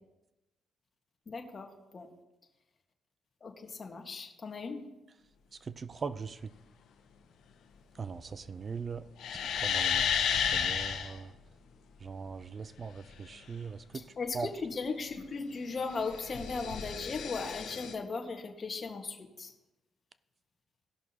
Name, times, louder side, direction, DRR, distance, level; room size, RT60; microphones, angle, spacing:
voice 1, 1.3-1.7 1.9-2.1 3.4-4.8 13.9-19.5, left 4 dB, 40° left, 3 dB, 1.6 m, -37 dB
voice 2, 5.6-6.5 8.0-9.1 9.6-10.1 10.5-11.3 12.0-14.1 14.3-14.5, right 5 dB, 40° right, 14 dB, 0.5 m, -40 dB
sound 1, 9.2-11.1 15.9-17.9, left 7 dB, 80° left, 1.1 m, -31 dB
17.5 x 6.1 x 2.9 m, 1.0 s
cardioid pair, 90°, 0 cm